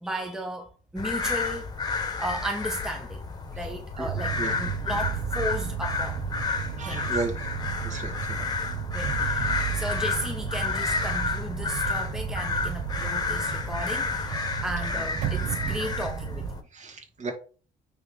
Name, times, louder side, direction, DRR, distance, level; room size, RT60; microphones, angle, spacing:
voice 1, 0.0-1.7 2.2-3.2 3.5-6.2 6.8-7.2 8.9-16.6, equal, 5° right, 0.8 m, -35 dB
sound 1, 1.0-16.6, left 4 dB, 25° left, 1.2 m, -31 dB
sound 2, 4.1-16.5, right 11 dB, 80° right, 0.6 m, -33 dB
voice 2, 6.8-7.3 7.8-8.4 16.7-17.3, right 3 dB, 45° right, 2.2 m, -33 dB
9.2 x 3.4 x 3.9 m
cardioid pair, 110°, 17 cm